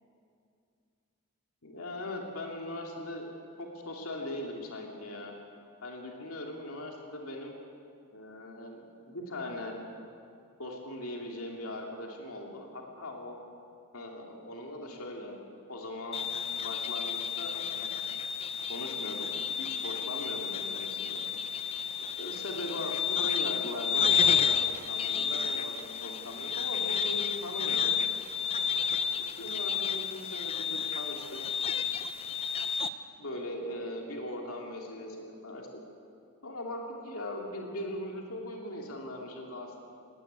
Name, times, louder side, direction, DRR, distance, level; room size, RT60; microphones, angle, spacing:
voice 1, 1.6-3.3 3.6-5.3 5.8-7.6 8.1-9.8 10.6-13.4 13.9-15.4 15.7-16.2 16.6-18.1 18.7-19.3 19.6-21.2 22.0-27.9 29.1-31.4 33.2-35.8 36.4-39.8, left 1 dB, 70° left, 0 dB, 2.8 m, -40 dB
sound 1, 16.1-32.9, left 7 dB, 25° left, 0.7 m, -31 dB
19.0 x 17.0 x 9.6 m, 2.4 s
head